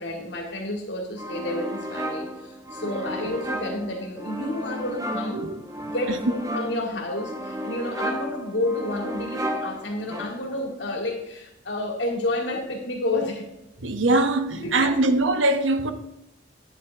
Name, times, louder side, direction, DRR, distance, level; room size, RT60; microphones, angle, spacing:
voice 1, 0.0-5.5 5.9-13.5 14.6-15.1, left 2 dB, 65° left, 2.6 m, -30 dB
sound 1, 1.2-10.7, equal, 20° right, 0.9 m, -33 dB
voice 2, 13.8-15.9, right 2 dB, 80° right, 1.0 m, -22 dB
11.5 x 9.8 x 3.6 m
head